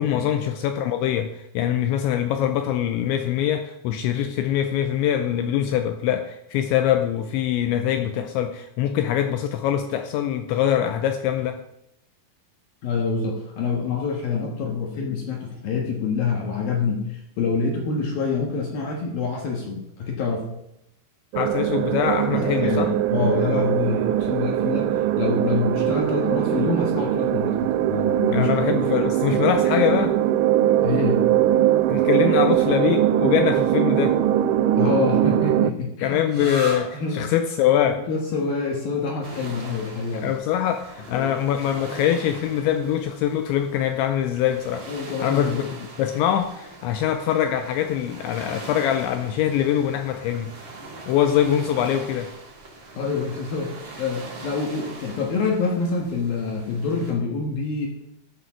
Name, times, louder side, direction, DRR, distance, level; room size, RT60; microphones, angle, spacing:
voice 1, 0.0-11.6 21.4-22.9 28.3-30.2 31.9-34.2 36.0-38.0 40.1-44.9 45.2-50.5 51.1-52.3, left 10 dB, 85° left, 7 dB, 2.6 m, -23 dB
voice 2, 12.8-20.5 22.3-28.5 30.8-31.3 34.7-36.5 36.9-37.3 37.9-40.3 41.1-41.3 44.9-45.7 53.0-57.9, left 4 dB, 65° left, 0 dB, 2.5 m, -26 dB
sound 1, 21.3-35.7, right 12 dB, 85° right, 3.3 m, -21 dB
sound 2, 36.3-43.7, right 1 dB, 5° right, 2.1 m, -41 dB
sound 3, 39.2-57.1, right 2 dB, 40° right, 1.7 m, -42 dB
14.5 x 6.9 x 6.1 m, 0.85 s
omnidirectional pair, 5.9 m